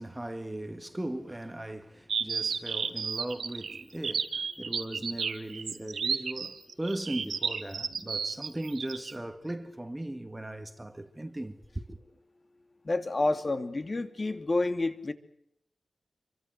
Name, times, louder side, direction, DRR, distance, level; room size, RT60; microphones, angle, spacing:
voice 1, 0.0-12.0, right 1 dB, 15° right, 1.9 m, -38 dB
sound 1, 2.1-9.1, right 6 dB, 90° right, 2.4 m, -32 dB
voice 2, 12.8-15.1, left 2 dB, 35° left, 2.8 m, -29 dB
28.0 x 24.5 x 7.8 m
wide cardioid pair, 120°, 0 cm